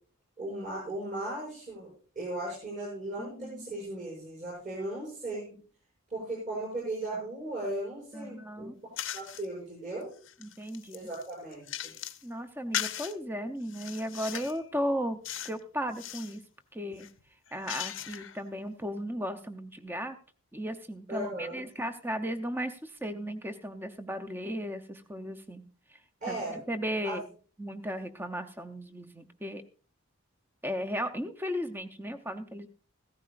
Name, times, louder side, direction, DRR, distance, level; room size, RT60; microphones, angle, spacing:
voice 1, 0.4-5.6 6.1-8.7 9.1-10.1 10.9-11.9 21.1-21.6 26.2-26.6 27.0-27.2, right 1 dB, 35° right, -6 dB, 7.0 m, -37 dB
voice 2, 3.2-3.7 8.1-8.8 10.4-11.1 12.2-15.2 15.4-16.4 16.7-17.1 17.5-20.2 20.5-25.6 25.9-26.0 26.3-27.3 27.6-29.6 30.6-32.7, equal, 10° right, 8 dB, 0.7 m, -35 dB
sound 1, 9.0-9.5 10.0-12.2 12.7-13.1 13.7-14.6 15.2-15.6 15.9-16.4 16.9-18.4, left 11 dB, 60° left, 0.7 m, -38 dB
15.5 x 13.5 x 2.5 m, 0.39 s
head